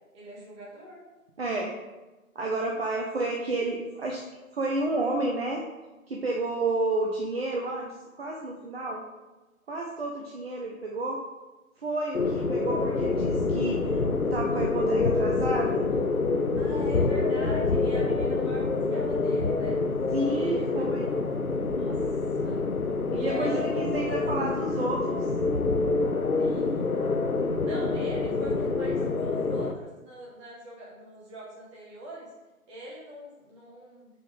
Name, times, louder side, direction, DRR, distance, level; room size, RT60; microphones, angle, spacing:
voice 1, 0.1-1.0 15.8-16.0 16.5-19.8 20.2-21.2 21.8-22.1 22.3-22.6 23.1-24.3 24.7-24.8 26.4-27.2 27.6-32.3 32.7-34.1, right 1 dB, 20° right, -6 dB, 2.5 m, -43 dB
voice 2, 1.4-1.7 2.3-4.2 4.5-5.6 6.1-7.9 8.1-9.0 9.7-11.2 11.8-15.8 20.1-21.1 23.1-25.2, right 2 dB, 45° right, -1 dB, 1.1 m, -30 dB
sound 1, 12.1-29.7, left 3 dB, 90° left, 0.8 m, -26 dB
6.8 x 5.5 x 5.0 m, 1.1 s
figure-of-eight pair, 145°, 42 cm